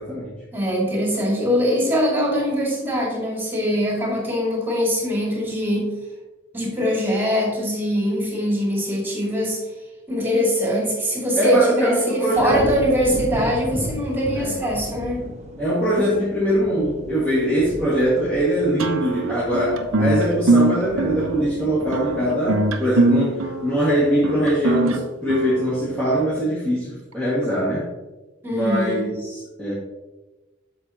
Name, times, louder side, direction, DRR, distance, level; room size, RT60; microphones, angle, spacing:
voice 1, 0.0-0.3 11.3-12.7 14.3-14.6 15.6-27.9 28.5-29.7, equal, 5° left, -10 dB, 1.8 m, -22 dB
voice 2, 0.5-5.9 6.5-9.6 10.1-15.3 28.4-29.1, equal, 10° right, -3 dB, 2.3 m, -22 dB
sound 1, 12.3-23.6 24.0-24.5, equal, 35° right, 0.9 m, -35 dB
sound 2, 18.8-26.2, right 2 dB, 90° right, 0.7 m, -22 dB
8.2 x 6.2 x 2.9 m, 1.1 s
head